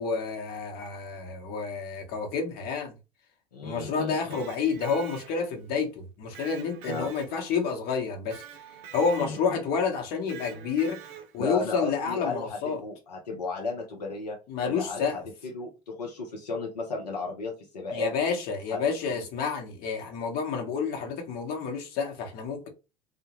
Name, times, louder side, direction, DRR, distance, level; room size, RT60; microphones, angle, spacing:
voice 1, 0.0-2.9 3.6-8.4 8.9-12.8 14.5-15.2 17.9-22.7, left 5 dB, 50° left, 0.9 m, -29 dB
voice 2, 3.5-4.4 6.9-7.1 9.2-9.4 11.4-18.1 18.7-18.8 19.1-19.2, left 3 dB, 80° left, 0.6 m, -34 dB
Electric guitar, 4.1-5.7 6.3-7.7 8.3-9.6 10.3-11.5, right 8 dB, 60° right, 0.5 m, -46 dB
2.1 x 2.1 x 2.9 m
figure-of-eight pair, 70°, 20 cm